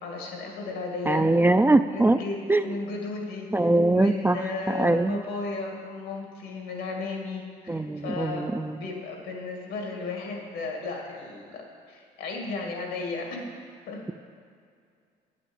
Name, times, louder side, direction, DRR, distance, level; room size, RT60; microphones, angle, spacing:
voice 1, 0.0-1.3 1.9-14.0, left 3 dB, 85° left, 1 dB, 2.4 m, -35 dB
voice 2, 1.1-2.2 2.5-2.7 3.5-4.4 4.7-5.2 7.7-8.8, right 2 dB, 10° right, 10 dB, 0.4 m, -22 dB
8.6 x 8.5 x 7.1 m, 2.3 s
supercardioid pair, 75°, 18 cm